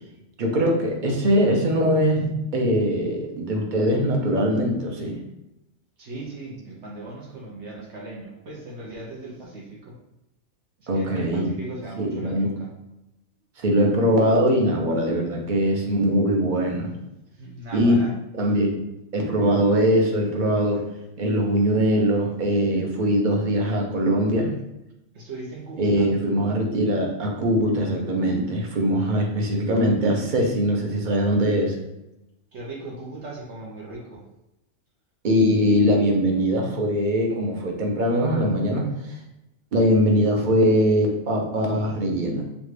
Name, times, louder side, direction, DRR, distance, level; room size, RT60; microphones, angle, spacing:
voice 1, 0.4-5.2 10.9-11.5 12.0-12.5 13.6-16.9 17.7-18.1 18.4-18.8 19.1-20.9 21.2-24.5 25.8-31.7 35.2-38.9 39.7-42.4, equal, 45° right, 1 dB, 0.8 m, -21 dB
voice 2, 6.0-9.9 10.8-12.7 17.4-18.1 25.1-26.0 32.5-34.2, right 2 dB, 70° right, -3 dB, 1.1 m, -38 dB
5.1 x 2.4 x 3.2 m, 0.91 s
omnidirectional pair, 1.2 m